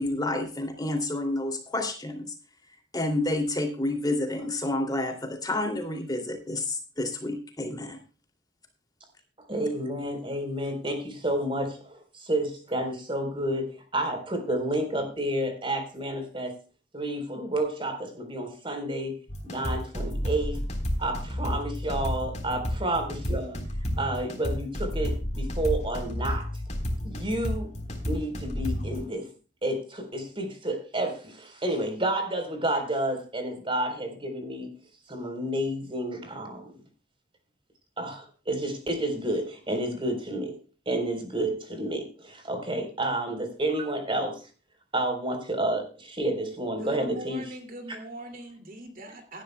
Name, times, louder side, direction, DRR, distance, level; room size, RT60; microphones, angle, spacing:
voice 1, 0.0-2.3 2.9-8.0, left 2 dB, 20° left, 4 dB, 2.6 m, -29 dB
voice 2, 9.5-16.5 16.9-19.2 19.4-20.6 21.0-23.6 24.0-26.5 27.0-27.7 28.1-29.3 29.6-34.7 35.1-36.7 38.0-40.6 40.9-44.4 44.9-47.4, right 1 dB, 30° right, 6 dB, 3.8 m, -30 dB
sound 1, 19.3-29.0, equal, 40° left, 3.7 m, -31 dB
voice 3, 46.8-49.4, right 1 dB, 50° right, 4 dB, 2.5 m, -41 dB
18.0 x 11.5 x 2.2 m, 0.36 s
head